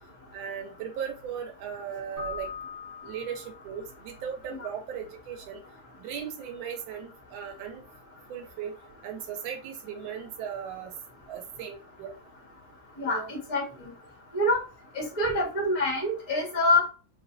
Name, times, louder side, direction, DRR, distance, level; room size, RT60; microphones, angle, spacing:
voice 1, 0.3-2.5 3.0-5.6 6.0-7.8 8.3-8.7 9.0-10.9 11.3-12.1 13.1-13.3, right 8 dB, 85° right, 3 dB, 1.5 m, -37 dB
Keyboard (musical), 2.2-4.0, left 5 dB, 45° left, 1.1 m, -40 dB
voice 2, 13.0-13.9 14.3-14.6 14.9-16.9, left 1 dB, 20° left, -4 dB, 1.2 m, -26 dB
3.3 x 3.2 x 2.5 m, 0.34 s
omnidirectional pair, 2.1 m